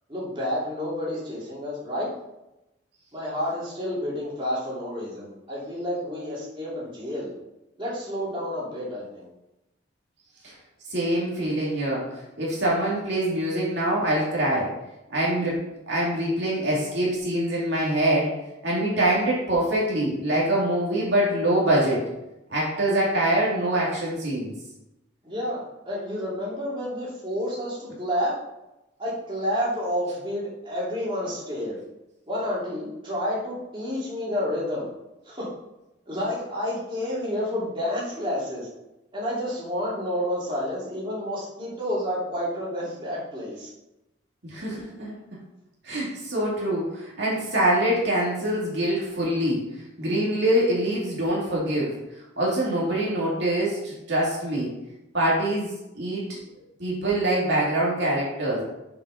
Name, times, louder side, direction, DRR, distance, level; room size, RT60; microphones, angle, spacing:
voice 1, 0.1-2.1 3.1-7.3 7.8-9.3 25.2-28.3 29.0-31.8 32.3-34.9 35.2-35.5 36.1-38.7 39.1-43.7, equal, 25° right, -7 dB, 2.9 m, -30 dB
voice 2, 10.9-14.7 15.1-22.1 22.5-24.5 44.4-45.2 45.8-49.7 50.0-52.0 52.4-54.7 55.1-56.4 56.8-58.6, right 1 dB, 60° right, -5 dB, 2.4 m, -24 dB
6.9 x 5.5 x 5.6 m, 0.94 s
head